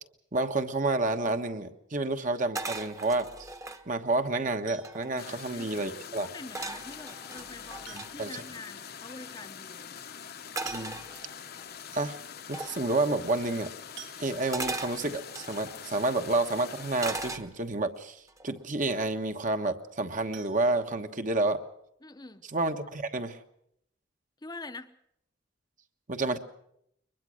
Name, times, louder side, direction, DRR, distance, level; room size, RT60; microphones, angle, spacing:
voice 1, 0.3-3.5 3.9-6.3 7.9-8.4 10.6-11.0 11.9-12.2 12.5-13.7 14.2-21.6 22.4-23.4 26.1-26.4, right 2 dB, 40° right, 7 dB, 1.3 m, -30 dB
sound 1, 2.5-3.8 4.4-4.5 4.7-5.3 6.5-8.1 10.6-11.6 12.5-12.8 14.5-15.7 17.0-17.8 18.3-18.6, right 3 dB, 15° right, 1.1 m, -38 dB
sound 2, 4.7-5.3 6.8-6.9 7.8-8.5 8.8-8.9 9.2-9.3 10.3-10.4 10.7-11.4 11.9-12.0 12.4-12.5 14.0-14.8 20.3-21.5 21.9-22.0 22.4-22.5 22.9-23.0, right 10 dB, 70° right, 1.9 m, -50 dB
sound 3, 5.2-17.4, left 8 dB, 55° left, 1.0 m, -44 dB
voice 2, 5.2-10.0 22.0-22.4 24.4-24.9, left 2 dB, 20° left, 9 dB, 0.8 m, -46 dB
23.0 x 21.0 x 6.4 m, 0.74 s
head